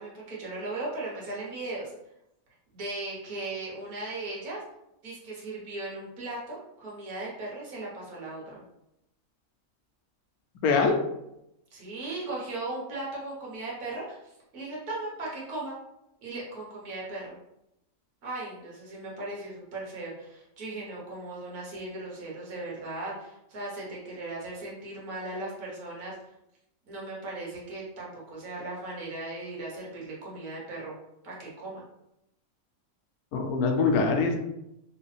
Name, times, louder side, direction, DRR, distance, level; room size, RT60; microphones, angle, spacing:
voice 1, 0.0-1.9 2.7-4.6 5.0-8.6 11.7-15.7 16.2-17.4 18.2-26.1 26.9-31.0 31.2-31.8, right 2 dB, 90° right, -5 dB, 1.7 m, -37 dB
voice 2, 10.6-11.0 33.3-34.4, left 4 dB, 90° left, 4 dB, 1.1 m, -23 dB
3.3 x 3.1 x 3.2 m, 0.85 s
omnidirectional pair, 1.5 m